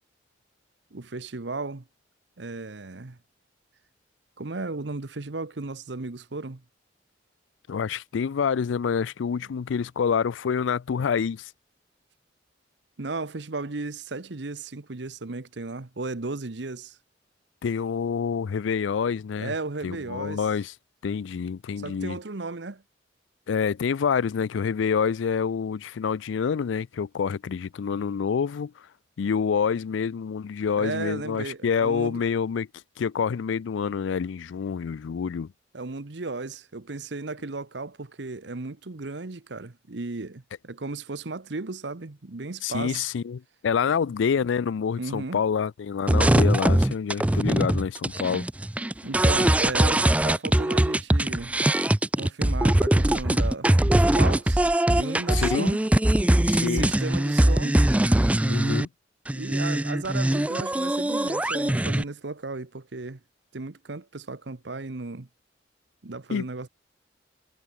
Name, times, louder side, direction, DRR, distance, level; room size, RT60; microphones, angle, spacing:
voice 1, 0.9-1.8 2.4-3.2 4.4-6.6 13.0-17.0 19.4-20.5 21.8-22.8 30.8-32.2 35.7-43.1 45.0-45.4 49.0-51.6 52.1-54.6 54.9-55.9 56.6-57.8 59.3-63.2 63.5-65.3 66.0-66.7, right 3 dB, 70° right, 1.0 m, -35 dB
voice 2, 7.7-11.5 17.6-19.5 19.8-20.7 21.0-22.2 23.5-28.7 29.2-32.7 33.0-35.5 42.6-48.5 55.3-55.7 56.5-56.9 58.4-58.9 66.3-66.5, left 6 dB, 85° left, 0.4 m, -27 dB
sound 1, 46.1-58.9 59.3-62.0, right 1 dB, 5° right, 0.3 m, -22 dB
head